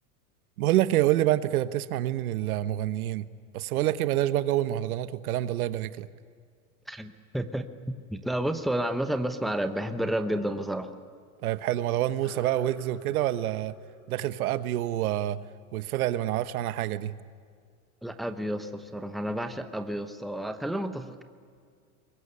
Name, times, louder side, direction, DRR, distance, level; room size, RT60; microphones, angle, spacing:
voice 1, 0.6-3.2 3.5-6.1 11.4-13.7 14.1-15.4 15.7-17.1, right 13 dB, 80° right, 13 dB, 1.2 m, -27 dB
voice 2, 6.9-7.7 8.1-10.9 18.0-21.2, right 1 dB, ahead, 7 dB, 1.0 m, -31 dB
sound 1, 12.2-17.0, left 2 dB, 25° left, 7.4 m, -53 dB
23.0 x 21.5 x 9.8 m, 2.1 s
supercardioid pair, 135°, 43 cm